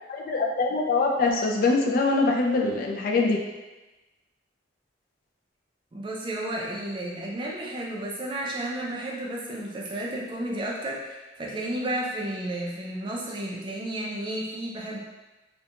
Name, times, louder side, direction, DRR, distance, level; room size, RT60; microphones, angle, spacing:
voice 1, 0.1-3.4, left 3 dB, 50° left, 0 dB, 0.3 m, -23 dB
voice 2, 5.9-15.0, right 1 dB, 25° right, -3 dB, 0.4 m, -32 dB
2.4 x 2.1 x 2.8 m, 1.1 s
head